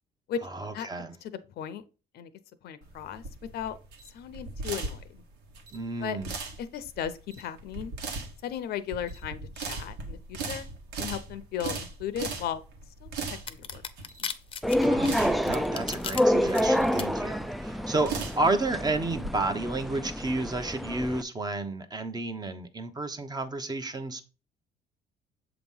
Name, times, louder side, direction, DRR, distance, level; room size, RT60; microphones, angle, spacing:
voice 1, 0.5-1.1 5.7-6.3 14.8-24.2, right 2 dB, 25° right, 0.9 m, -31 dB
voice 2, 1.2-1.8 2.1-2.3 2.6-3.2 3.5-3.8 4.1-5.2 6.0-6.2 6.6-7.9 8.4-10.7 11.0-12.6 13.0-13.8 14.2-14.3, left 9 dB, 70° left, 0.7 m, -36 dB
sound 1, 2.8-19.3, right 4 dB, 80° right, 1.4 m, -38 dB
sound 2, 13.5-16.2 16.5-17.0, left 6 dB, 30° left, 0.7 m, -35 dB
sound 3, 14.6-21.2, equal, ahead, 0.3 m, -28 dB
7.3 x 3.0 x 5.5 m
cardioid pair, 110°, 17 cm